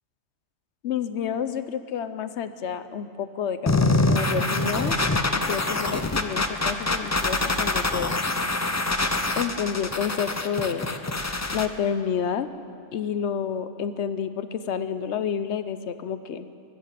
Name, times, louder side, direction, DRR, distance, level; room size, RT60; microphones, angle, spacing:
voice 1, 0.8-5.0 5.3-8.1 9.4-10.9 11.5-12.5 12.9-16.5, left 7 dB, 70° left, 12 dB, 1.0 m, -29 dB
sound 1, 3.7-11.7, left 2 dB, 25° left, 0.3 m, -25 dB
21.5 x 8.3 x 7.5 m, 2.4 s
omnidirectional pair, 1.3 m